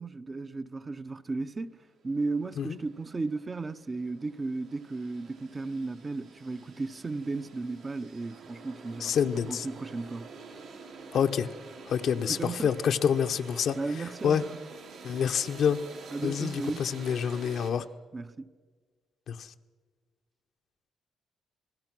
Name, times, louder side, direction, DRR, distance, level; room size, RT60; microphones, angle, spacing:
voice 1, 0.0-10.3 12.2-12.7 13.8-14.6 16.1-16.9 17.8-17.9 18.1-18.5, right 3 dB, 30° right, 0.8 m, -35 dB
sound 1, 1.7-1.8 2.1-17.7, right 4 dB, 85° right, 4.8 m, -48 dB
voice 2, 9.0-9.7 11.1-11.5 11.9-13.8 14.2-14.4 15.0-15.8 16.2-17.8 19.3-19.5, left 7 dB, 65° left, 0.9 m, -27 dB
29.0 x 19.5 x 6.1 m
cardioid pair, 90°, 0 cm